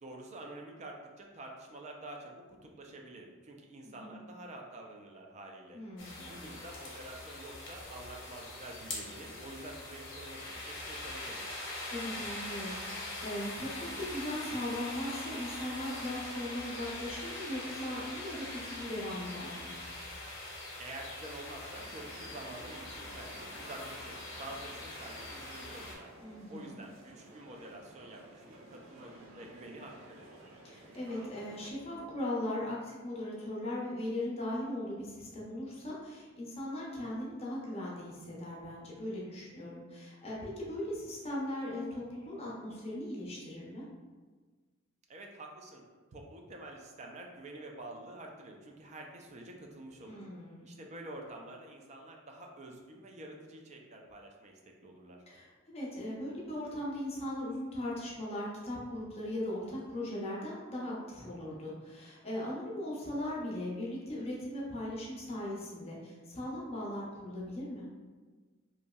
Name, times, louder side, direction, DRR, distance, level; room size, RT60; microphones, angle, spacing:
voice 1, 0.0-5.8 6.3-11.4 20.8-26.1 26.5-30.3 45.1-45.8 46.1-50.2 50.6-55.2, right 1 dB, 35° right, 1 dB, 0.4 m, -48 dB
voice 2, 3.8-4.2 5.7-6.4 11.9-19.7 26.2-26.8 30.6-43.8 50.0-50.7 55.3-67.9, left 1 dB, 30° left, -5 dB, 0.6 m, -39 dB
sound 1, 6.0-25.9, left 2 dB, 70° left, 0.7 m, -42 dB
sound 2, 21.8-31.7, right 1 dB, 90° right, 0.5 m, -54 dB
2.9 x 2.6 x 2.3 m, 1.4 s
head